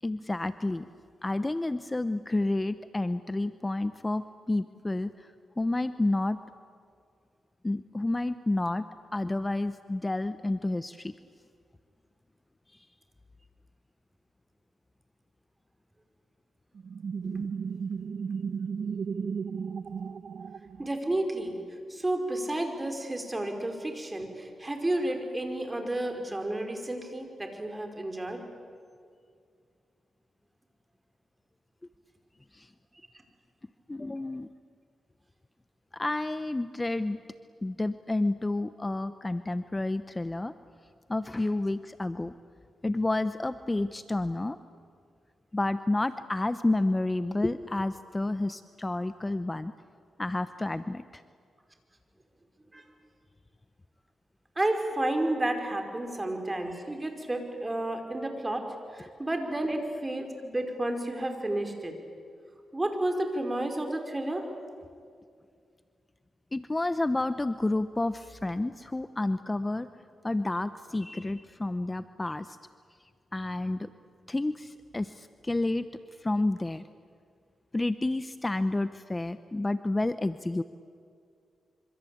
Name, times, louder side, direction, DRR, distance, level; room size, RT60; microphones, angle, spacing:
voice 1, 0.0-0.9 1.2-6.4 7.6-8.9 9.1-11.1 12.7-12.9 32.5-32.7 33.9-34.5 35.9-37.2 37.6-40.5 41.1-42.3 42.8-44.6 45.5-49.7 50.2-51.2 66.5-69.9 70.2-72.6 73.3-73.9 74.3-75.9 76.2-76.9 77.7-80.6, left 2 dB, 20° left, 12 dB, 0.9 m, -30 dB
sound 1, 16.8-21.2, right 6 dB, 60° right, 0.9 m, -34 dB
voice 2, 20.8-21.6 21.9-28.4 52.7-52.8 54.6-58.6 58.9-61.9 62.7-64.5, right 1 dB, 20° right, 5 dB, 5.3 m, -31 dB
26.0 x 26.0 x 8.7 m, 2.2 s
cardioid pair, 65°, 0 cm